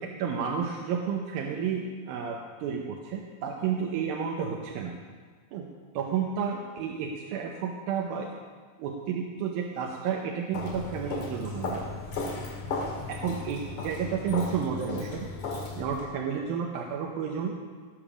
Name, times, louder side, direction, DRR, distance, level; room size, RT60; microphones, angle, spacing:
voice 1, 0.0-4.9 5.5-5.7 5.9-8.3 8.8-11.8 13.1-15.3 15.8-17.6, right 7 dB, 90° right, 0 dB, 2.8 m, -31 dB
Walk footsteps, 10.5-16.1, left 3 dB, 60° left, 3.4 m, -35 dB
18.5 x 6.9 x 6.2 m, 1.5 s
omnidirectional pair, 4.1 m